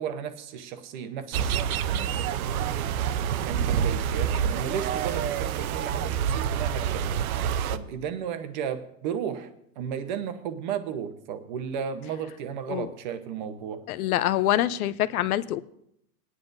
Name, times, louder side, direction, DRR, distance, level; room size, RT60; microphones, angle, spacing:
voice 1, 0.0-2.1 3.4-7.4 7.7-9.5 9.8-13.8, right 8 dB, 30° right, 9 dB, 0.8 m, -34 dB
sound 1, 1.3-7.8, right 8 dB, 70° right, 0.7 m, -27 dB
voice 2, 13.9-15.6, left 13 dB, 70° left, 16 dB, 0.7 m, -25 dB
20.0 x 10.0 x 2.6 m, 0.75 s
supercardioid pair, 180°, 45 cm